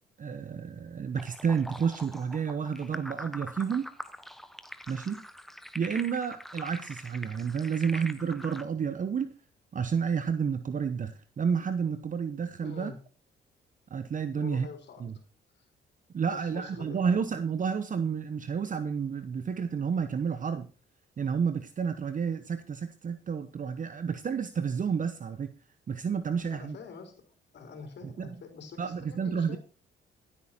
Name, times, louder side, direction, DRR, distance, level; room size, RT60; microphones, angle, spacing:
voice 1, 0.2-3.9 4.9-5.2 5.7-9.3 9.7-12.9 13.9-14.7 15.0-15.1 16.1-20.7 21.2-25.5 25.9-26.8 28.2-28.3 28.8-29.6, right 6 dB, 40° right, 1.0 m, -30 dB
sound 1, 1.1-8.6, equal, ahead, 1.2 m, -43 dB
voice 2, 12.6-13.0 14.4-15.1 15.5-15.7 16.2-17.2 26.5-29.6, left 5 dB, 60° left, 3.9 m, -46 dB
15.5 x 8.7 x 4.4 m
cardioid pair, 90°, 20 cm